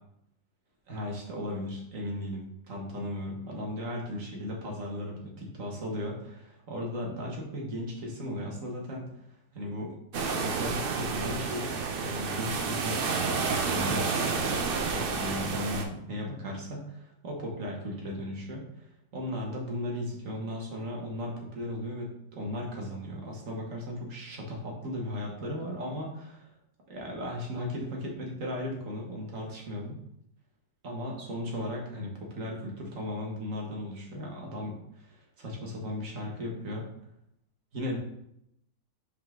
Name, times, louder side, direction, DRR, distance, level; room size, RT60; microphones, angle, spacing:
voice 1, 0.9-9.1 9.5-10.0 10.4-13.0 13.4-18.9 19.1-26.5 26.9-30.0 30.8-36.9 37.7-38.0, left 1 dB, 50° right, -1 dB, 1.8 m, -36 dB
Tybee GA Ocean, 10.1-15.8, right 4 dB, 90° right, 0.4 m, -30 dB
5.6 x 4.8 x 3.7 m, 0.77 s
omnidirectional pair, 1.9 m